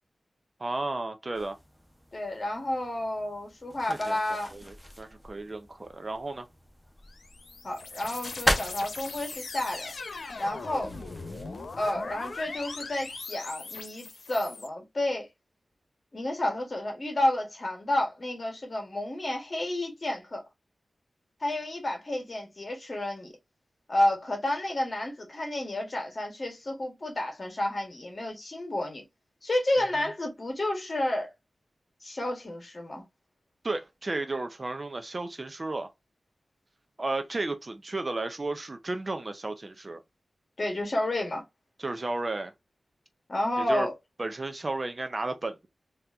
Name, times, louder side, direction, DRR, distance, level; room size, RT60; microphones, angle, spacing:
voice 1, 0.6-1.5 3.9-4.2 4.5-6.4 30.0-30.1 33.6-35.9 37.0-40.0 41.8-42.5 43.6-43.9 44.2-45.7, right 2 dB, 35° right, 0.5 m, -33 dB
sound 1, 1.3-13.2, equal, ahead, 1.0 m, -38 dB
voice 2, 2.1-4.5 7.6-9.9 10.4-10.9 11.8-15.3 16.1-20.4 21.4-23.3 23.9-29.0 29.4-31.3 32.0-33.0 40.6-41.4 43.3-43.9, left 1 dB, 40° left, 1.5 m, -30 dB
sound 2, 7.0-14.7, left 3 dB, 75° left, 0.9 m, -40 dB
4.3 x 2.8 x 2.6 m
wide cardioid pair, 120°, 0 cm